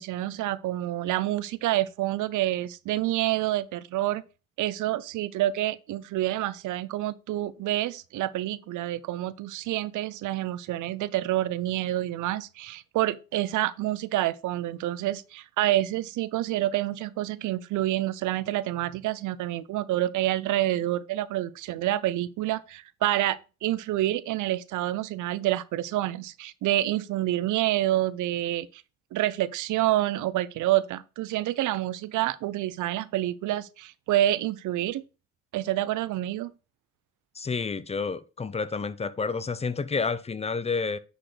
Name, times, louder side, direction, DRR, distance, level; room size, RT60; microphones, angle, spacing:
voice 1, 0.0-4.2 4.6-28.8 29.1-35.1 35.5-36.5, right 14 dB, 80° right, 0.6 m, -28 dB
voice 2, 37.3-41.0, left 4 dB, 20° left, 0.5 m, -29 dB
9.9 x 4.4 x 3.3 m
cardioid pair, 90°, 30 cm